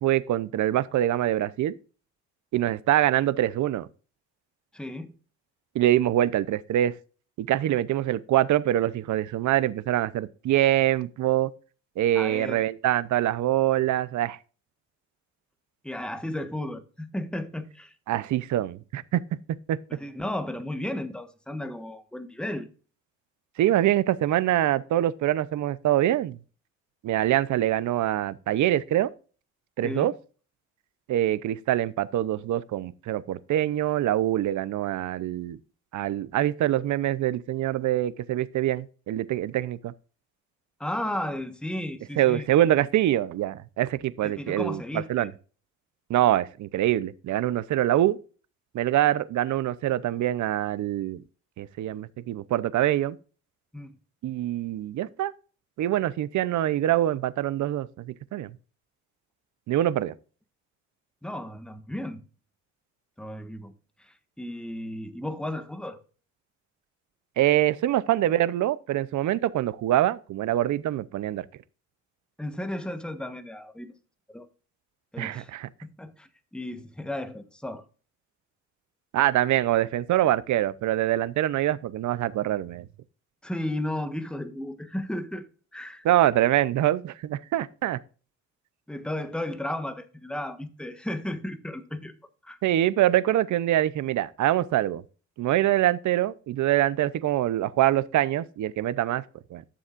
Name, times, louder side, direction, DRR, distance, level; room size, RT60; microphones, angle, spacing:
voice 1, 0.0-1.8 2.5-3.9 5.7-6.9 7.4-11.5 12.0-14.4 18.1-19.2 19.7-19.8 23.6-26.4 27.0-29.1 29.8-30.1 31.1-35.6 35.9-39.9 42.2-45.3 46.1-48.2 48.7-51.2 51.6-53.2 54.2-55.3 55.8-58.5 59.7-60.1 67.4-71.5 75.2-75.7 79.1-82.8 86.0-88.0 92.6-95.0 95.4-99.2 99.5-99.6, right 13 dB, 70° right, 0.7 m, -24 dB
voice 2, 4.7-5.1 12.1-12.6 15.8-17.9 19.9-22.7 29.8-30.1 40.8-42.5 44.2-45.3 53.7-54.0 61.2-62.2 63.2-63.7 64.0-66.0 72.4-73.9 74.3-74.5 75.1-75.5 75.8-77.8 83.4-85.5 85.7-86.0 88.9-92.1 92.4-92.6, left 1 dB, 5° left, 1.3 m, -34 dB
13.0 x 7.1 x 2.5 m
cardioid pair, 90°, 30 cm